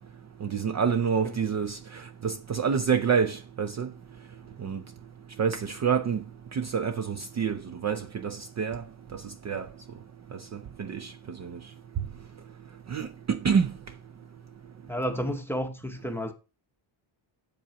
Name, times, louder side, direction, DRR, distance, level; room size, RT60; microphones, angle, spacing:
voice 1, 0.4-3.9 4.6-4.8 5.4-6.2 6.5-8.8 9.1-9.7 10.3-11.6 12.9-13.7, right 6 dB, 40° right, 0.4 m, -28 dB
voice 2, 14.9-16.3, equal, 5° left, 0.7 m, -31 dB
8.7 x 7.6 x 2.9 m
wide cardioid pair, 180°, 47 cm